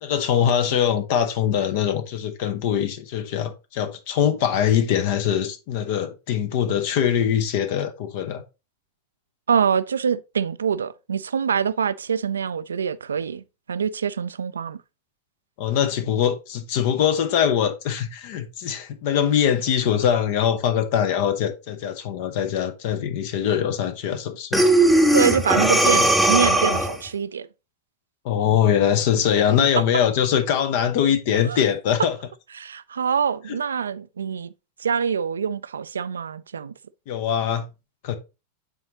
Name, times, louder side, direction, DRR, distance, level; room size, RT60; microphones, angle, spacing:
voice 1, 0.0-8.4 15.6-24.7 28.2-32.1 37.1-37.6 38.0-38.2, left 9 dB, 50° left, 0.7 m, -22 dB
voice 2, 9.5-14.8 25.1-27.5 31.4-31.6 32.5-34.5 34.8-36.7, right 7 dB, 70° right, 0.3 m, -25 dB
Breathing, 24.5-27.1, right 1 dB, ahead, 0.9 m, -18 dB
9.0 x 3.9 x 2.9 m
figure-of-eight pair, 90°, 0 cm